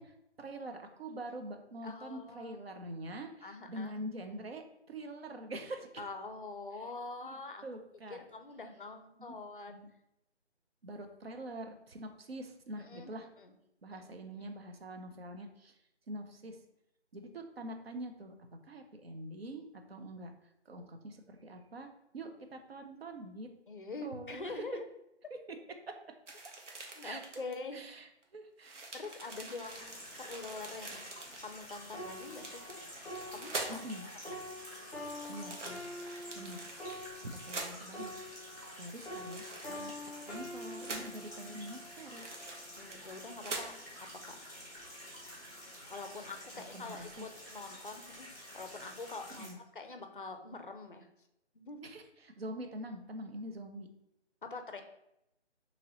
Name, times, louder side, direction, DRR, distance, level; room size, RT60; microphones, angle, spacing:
voice 1, 0.0-5.9 7.2-8.2 9.2-9.4 9.7-9.9 10.8-13.3 13.8-15.8 16.1-16.6 17.1-18.3 18.7-20.3 20.7-21.9 22.1-23.5 24.0-24.6 25.9-26.1 26.4-26.5 27.0-27.2 27.7-28.8 30.8-31.0 33.7-34.0 35.3-35.8 36.4-36.6 37.3-38.1 38.8-39.9 40.3-42.3 46.7-47.3 49.4-49.6 51.8-53.9, right 1 dB, 60° right, 6 dB, 0.5 m, -45 dB
voice 2, 1.8-2.5 3.4-3.9 6.0-7.6 8.1-9.8 12.8-13.5 13.9-14.0 23.7-24.8 27.0-27.8 28.9-31.0 31.4-32.8 33.3-33.8 34.3-34.4 42.8-43.7 44.0-44.4 45.9-48.3 48.5-51.1 51.5-51.9 54.4-54.8, left 3 dB, 50° left, 6 dB, 0.4 m, -45 dB
sound 1, 26.3-27.5 28.2-28.3 28.6-31.4 32.1-33.9 35.1-37.7 39.1-40.0 40.8-41.2 42.1-43.1 43.4-43.7 44.1-44.3, right 3 dB, 85° right, 0.9 m, -45 dB
sound 2, 29.6-49.5, equal, 15° right, 0.8 m, -50 dB
sound 3, 31.9-38.8 39.0-42.6 43.3-43.5, left 1 dB, 15° left, 0.9 m, -46 dB
2.9 x 2.7 x 4.0 m, 0.83 s
figure-of-eight pair, 175°, 35 cm